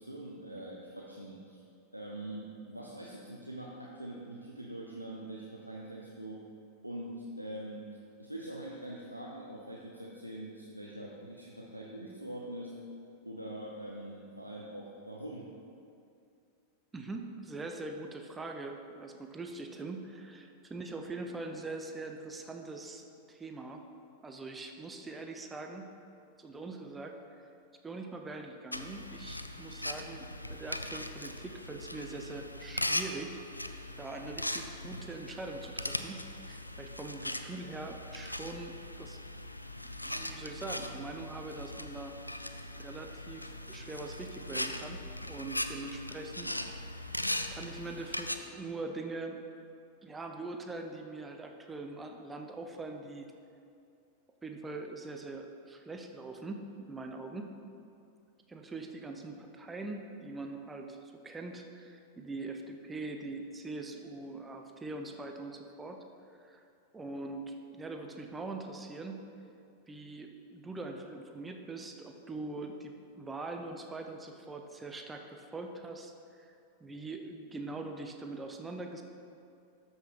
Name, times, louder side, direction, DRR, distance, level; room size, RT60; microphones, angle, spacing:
voice 1, 0.0-1.6 1.9-6.4 6.8-7.8 8.2-12.7 13.2-15.5, right 1 dB, 90° right, -3 dB, 0.7 m, -43 dB
voice 2, 16.9-23.8 24.2-25.9 26.4-27.4 27.8-33.4 34.0-36.2 36.5-39.2 39.9-42.1 42.7-47.0 47.5-49.4 50.0-53.3 54.4-57.5 58.5-66.0 66.3-66.6 66.9-69.2 69.9-79.0, right 3 dB, 15° right, 4 dB, 0.6 m, -42 dB
sound 1, 28.7-48.3, left 1 dB, 85° left, 0.3 m, -39 dB
13.0 x 5.6 x 3.1 m, 2.5 s
figure-of-eight pair, 90°, 0 cm